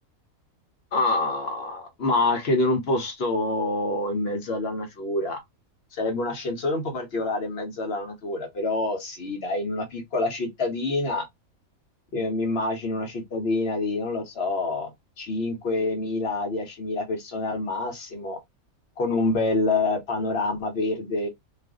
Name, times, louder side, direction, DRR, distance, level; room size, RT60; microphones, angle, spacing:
voice 1, 0.9-5.4 5.9-11.2 12.1-14.9 15.2-18.4 19.0-21.3, left 2 dB, 55° left, 0.9 m, -26 dB
2.5 x 2.4 x 3.4 m
omnidirectional pair, 1.5 m